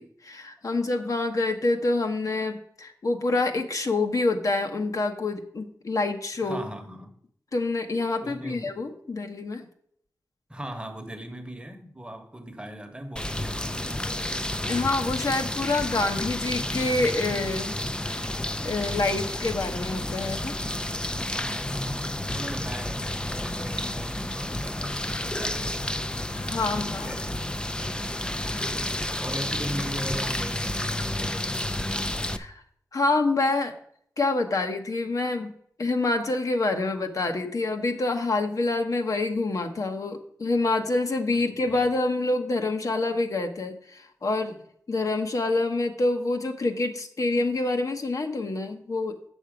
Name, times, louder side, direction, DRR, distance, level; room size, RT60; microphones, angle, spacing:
voice 1, 0.0-6.6 7.5-9.6 14.6-18.3 18.6-20.5 26.4-27.2 28.5-28.6 32.3-32.6 32.9-33.7 34.2-35.5 35.8-44.6 44.9-49.2, left 2 dB, 60° left, 1.0 m, -27 dB
voice 2, 6.4-7.2 8.2-8.8 10.5-14.1 21.2-25.9 27.0-27.5 28.4-28.9 29.1-30.8 41.3-41.9, right 1 dB, 15° right, 1.1 m, -39 dB
sound 1, 13.2-32.4, left 1 dB, 15° left, 0.5 m, -30 dB
7.9 x 6.3 x 4.9 m
wide cardioid pair, 85°, 6 cm